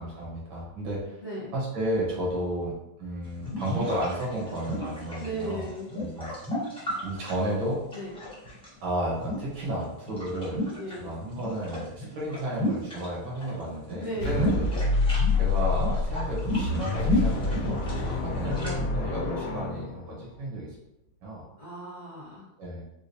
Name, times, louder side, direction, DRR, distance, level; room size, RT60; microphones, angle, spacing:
voice 1, 0.0-1.2 1.5-2.7 3.0-5.7 6.0-6.3 7.0-7.8 8.8-10.7 11.0-14.7 15.4-20.8 21.2-21.5 22.6-22.8, right 1 dB, 70° right, -5 dB, 1.9 m, -32 dB
voice 2, 1.2-1.5 5.2-5.9 7.9-8.2 10.8-11.1 14.0-14.4 17.9-18.1 19.2-19.4 21.6-22.5, right 1 dB, 45° left, -8 dB, 1.6 m, -36 dB
sound 1, 3.3-8.7 9.1-11.0 11.2-13.5 13.8-18.8, left 1 dB, 5° left, 0.5 m, -33 dB
sound 2, 14.2-20.4, left 3 dB, 85° left, 1.4 m, -27 dB
4.8 x 2.3 x 2.7 m, 0.87 s
omnidirectional pair, 2.3 m